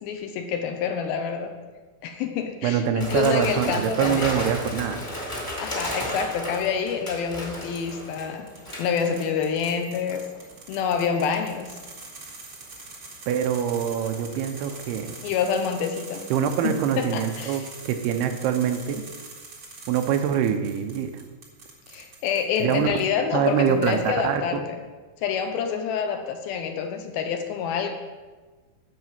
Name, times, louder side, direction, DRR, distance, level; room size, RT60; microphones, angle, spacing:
voice 1, 0.0-1.5 2.0-4.3 5.6-8.5 8.8-10.2 10.7-11.7 15.2-16.3 16.6-17.6 21.9-24.8 25.2-27.9, left 7 dB, 80° left, 5 dB, 2.5 m, -27 dB
voice 2, 2.6-5.0 13.3-15.2 16.3-19.0 19.9-21.2 22.6-22.9 23.3-24.4, right 8 dB, 90° right, 7 dB, 2.7 m, -24 dB
sound 1, 3.0-9.7 10.1-10.4 11.2-11.6 13.8-15.4 15.7-15.8, equal, 15° left, 1.0 m, -34 dB
sound 2, 6.5-6.9 7.6-23.0 23.5-24.2, right 3 dB, 70° right, 1.0 m, -44 dB
11.0 x 4.9 x 7.4 m, 1.3 s
omnidirectional pair, 4.6 m